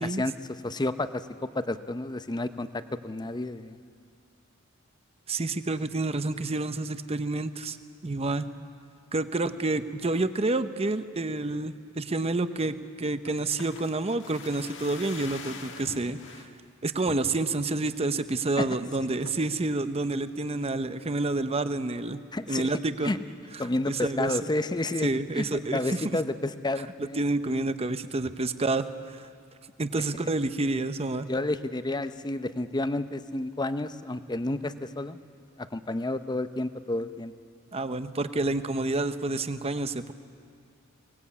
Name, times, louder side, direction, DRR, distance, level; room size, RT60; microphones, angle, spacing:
voice 1, 0.0-0.3 0.6-1.2 1.5-3.8 18.6-18.7 22.3-22.7 23.0-23.2 23.6-25.1 25.4-25.5 25.7-27.2 31.3-35.2 35.6-37.3, left 2 dB, 20° left, 11 dB, 0.7 m, -30 dB
voice 2, 5.3-7.8 8.0-8.5 9.1-16.4 16.8-22.2 22.5-23.1 23.8-24.3 25.0-26.2 27.2-29.3 29.8-31.3 37.7-40.1, right 2 dB, 30° right, 11 dB, 0.8 m, -29 dB
sound 1, 13.3-16.5 17.1-17.7 18.1-18.2 18.4-18.8 19.3-19.6 20.0-20.7 21.0-21.1, left 4 dB, 60° left, 1.6 m, -45 dB
22.5 x 19.0 x 8.5 m, 2.3 s
head